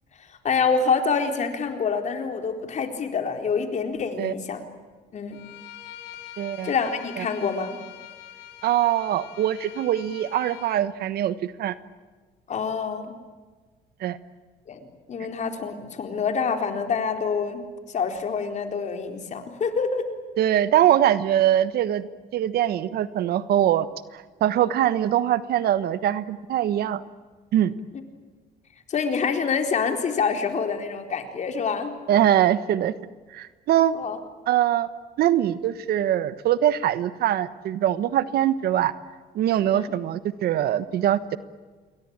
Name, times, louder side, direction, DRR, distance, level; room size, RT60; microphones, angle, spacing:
voice 1, 0.4-4.6 5.1-5.4 6.6-7.8 12.5-13.1 14.7-20.1 28.9-31.9 33.9-34.2 39.7-39.9, left 5 dB, 45° left, 5 dB, 4.1 m, -26 dB
Bowed string instrument, 5.3-10.8, left 12 dB, 80° left, 2.8 m, -44 dB
voice 2, 6.4-6.7 7.2-7.3 8.6-11.7 14.0-14.2 20.4-23.9 24.1-27.0 27.5-27.7 32.1-32.9 33.3-33.9 34.5-34.9 35.2-38.9 39.3-41.4, right 11 dB, 65° right, 14 dB, 1.3 m, -22 dB
28.0 x 22.5 x 8.9 m, 1.4 s
cardioid pair, 110°, 17 cm